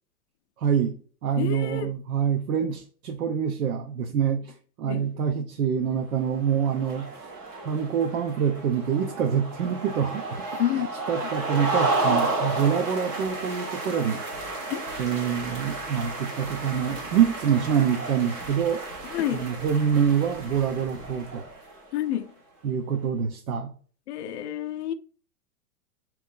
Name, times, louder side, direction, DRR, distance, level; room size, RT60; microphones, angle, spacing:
voice 1, 0.6-1.0 1.2-7.3 7.6-10.4 11.1-14.2 14.5-14.7 15.0-21.4 22.6-23.7, right 8 dB, 65° right, 0.8 m, -26 dB
voice 2, 1.4-1.9 4.9-5.1 10.6-10.9 14.7-14.8 19.1-19.5 21.9-22.3 24.1-24.9, left 11 dB, 50° left, 0.5 m, -28 dB
sound 1, 6.2-21.9, right 2 dB, 15° right, 0.4 m, -32 dB
3.7 x 3.1 x 3.7 m
hypercardioid pair, 140°, 45 cm